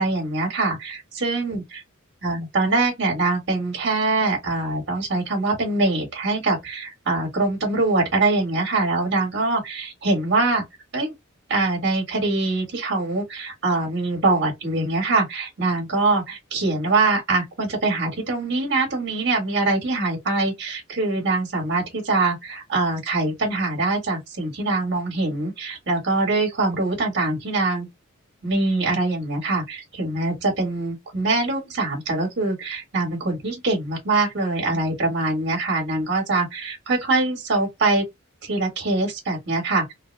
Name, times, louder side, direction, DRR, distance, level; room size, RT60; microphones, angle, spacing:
voice 1, 0.0-1.8 2.2-10.6 10.9-11.1 11.5-27.9 28.4-38.0 38.4-39.9, right 3 dB, 55° right, 1.6 m, -23 dB
3.4 x 2.2 x 3.2 m
head